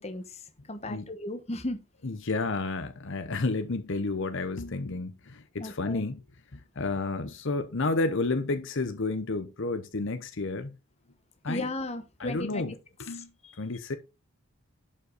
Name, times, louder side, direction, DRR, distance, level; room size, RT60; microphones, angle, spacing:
voice 1, 0.0-1.8 5.6-6.1 11.5-12.7 13.1-13.6, left 2 dB, 30° left, 1.1 m, -36 dB
voice 2, 2.0-6.2 6.5-10.7 11.4-11.7 12.2-12.7 13.0-13.3 13.6-14.0, left 3 dB, 55° left, 0.8 m, -31 dB
11.0 x 5.6 x 4.1 m
head